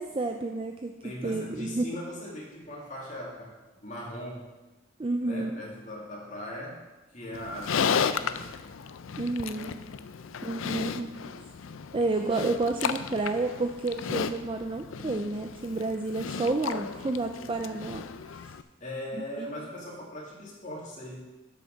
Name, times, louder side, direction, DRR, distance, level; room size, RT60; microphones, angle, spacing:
voice 1, 0.0-0.9 1.2-1.9 5.0-5.5 9.2-9.7 10.4-11.1 11.9-18.0 18.3-18.5 19.2-19.5, right 2 dB, 25° right, 4 dB, 0.4 m, -30 dB
voice 2, 1.0-4.5 5.2-6.9 7.1-8.5 10.3-12.0 18.8-21.2, left 1 dB, 40° left, -3 dB, 2.4 m, -40 dB
Livestock farm animals working animals, 7.3-18.6, left 6 dB, 80° left, 0.5 m, -34 dB
7.9 x 6.6 x 6.5 m, 1.1 s
head